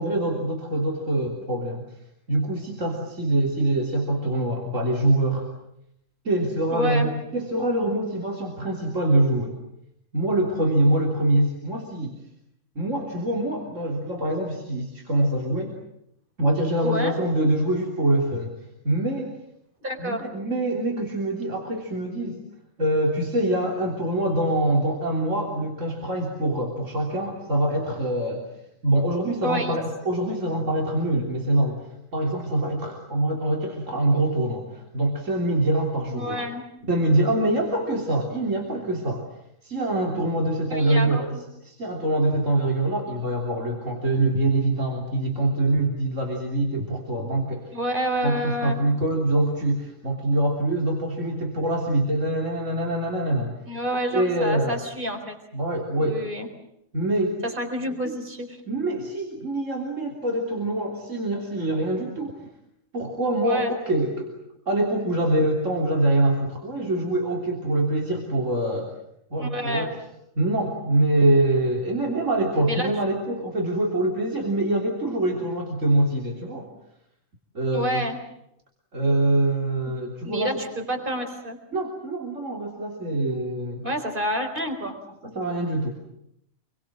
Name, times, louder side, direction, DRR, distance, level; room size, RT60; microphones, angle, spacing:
voice 1, 0.0-1.8 2.3-5.5 6.3-9.5 10.1-12.1 12.8-15.8 16.4-18.5 18.8-19.3 20.0-22.4 22.8-28.5 28.8-36.5 36.9-39.3 39.6-47.7 48.2-53.5 54.1-54.8 55.5-56.2 56.9-57.4 58.0-58.2 58.7-62.4 62.9-64.3 64.7-68.9 69.3-70.0 70.4-76.7 77.5-78.1 78.9-80.6 81.7-83.9 84.8-84.9 85.2-85.9, right 1 dB, 75° right, 0 dB, 3.8 m, -24 dB
voice 2, 6.7-7.1 16.8-17.1 19.8-20.2 29.4-29.8 30.1-30.2 36.1-36.7 40.7-41.4 47.7-48.8 53.7-55.4 56.0-56.5 57.6-58.6 63.4-63.7 69.4-69.9 72.7-72.9 77.7-78.2 79.9-80.0 80.2-81.6 83.8-85.0, equal, 40° right, 5 dB, 4.4 m, -28 dB
28.0 x 22.5 x 7.6 m, 0.78 s
omnidirectional pair, 1.3 m